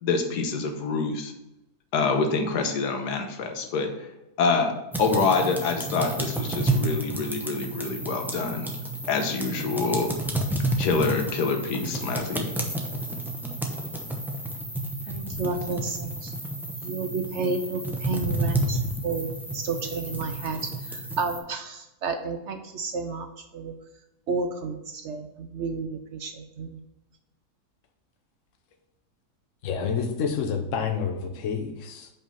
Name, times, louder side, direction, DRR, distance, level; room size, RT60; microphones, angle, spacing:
voice 1, 0.0-1.3 1.9-3.9 4.4-8.7 9.1-10.1 10.8-12.5, left 4 dB, 90° left, 5 dB, 1.5 m, -26 dB
sound 1, 4.9-21.4, right 1 dB, ahead, 0.4 m, -31 dB
voice 2, 15.1-16.3 16.8-23.7 24.3-26.8, right 4 dB, 65° right, 6 dB, 0.7 m, -31 dB
voice 3, 29.6-32.1, left 6 dB, 55° left, 4 dB, 1.1 m, -28 dB
5.4 x 4.9 x 5.6 m, 0.93 s
omnidirectional pair, 1.7 m